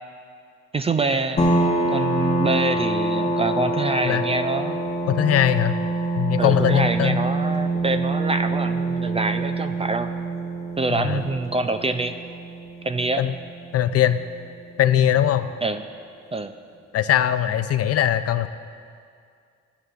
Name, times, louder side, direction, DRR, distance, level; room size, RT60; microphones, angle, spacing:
voice 1, 0.7-1.5 1.9-4.8 6.4-10.1 10.8-12.2 12.8-13.2 15.6-15.8 16.3-16.5, right 3 dB, 20° right, 9 dB, 0.3 m, -25 dB
sound 1, 1.4-14.6, right 2 dB, 20° left, 0.9 m, -26 dB
voice 2, 5.1-5.8 6.2-7.2 11.0-11.2 13.2-13.3 13.7-14.2 14.8-15.5 16.9-18.5, left 11 dB, 55° left, 11 dB, 0.4 m, -20 dB
14.0 x 9.2 x 2.4 m, 2.3 s
cardioid pair, 90°, 30 cm